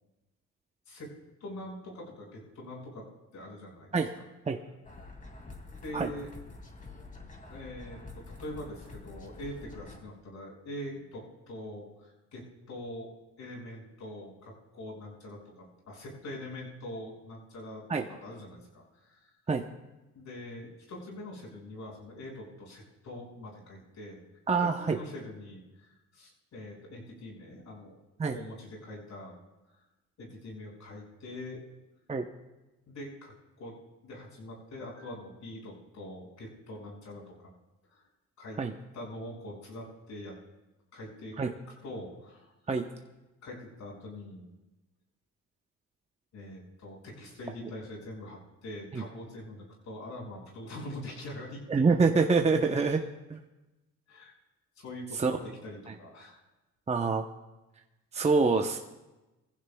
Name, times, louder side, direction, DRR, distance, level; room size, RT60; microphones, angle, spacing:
voice 1, 1.4-3.1 3.3-3.9 5.7-6.3 7.5-13.1 13.4-17.8 18.1-19.3 20.1-24.2 24.6-28.0 28.3-29.4 30.2-31.6 32.9-33.7 34.0-37.3 37.9-38.0 38.4-38.6 38.9-40.4 40.9-41.4 41.8-42.5 43.4-44.5 46.3-52.0 52.8-53.0 54.1-54.3 54.8-56.4, left 1 dB, 65° left, -2 dB, 5.8 m, -43 dB
sound 1, 4.8-10.0, left 3 dB, 25° left, 2.5 m, -47 dB
voice 2, 24.5-25.0 28.2-28.4 32.1-32.3 38.6-38.7 41.4-41.5 42.7-42.9 47.6-47.7 48.9-49.0 51.7-53.0 53.3-53.4 55.1-55.4 55.9-56.0 56.9-57.2 58.1-58.8, right 4 dB, 20° right, 3 dB, 0.8 m, -26 dB
22.5 x 15.5 x 2.3 m, 1.1 s
cardioid pair, 90°, 30 cm